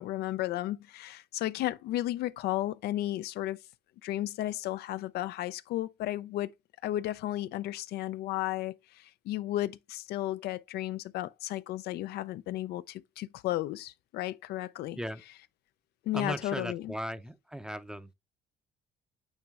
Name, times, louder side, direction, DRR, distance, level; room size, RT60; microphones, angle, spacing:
voice 1, 0.0-3.6 4.0-6.5 6.8-15.0 16.1-16.9, left 14 dB, 75° left, 0.4 m, -34 dB
voice 2, 16.1-18.1, equal, 5° right, 0.6 m, -37 dB
9.0 x 3.1 x 3.6 m
cardioid pair, 110°, 17 cm